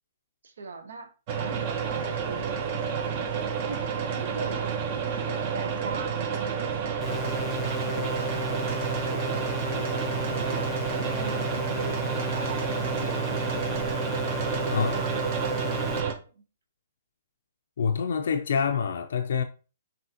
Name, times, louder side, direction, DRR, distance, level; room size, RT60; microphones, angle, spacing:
voice 1, 0.4-1.1 1.4-2.6 3.4-7.3 7.9-10.7 11.1-13.6 14.2-16.4, right 4 dB, 80° right, 0.8 m, -42 dB
sound 1, 1.3-16.1, right 7 dB, 35° right, 0.6 m, -30 dB
sound 2, 7.0-16.0, left 4 dB, 15° left, 0.6 m, -34 dB
voice 2, 14.7-15.0 17.8-19.4, left 6 dB, 70° left, 0.4 m, -26 dB
5.5 x 2.8 x 2.8 m
hypercardioid pair, 155°, 0 cm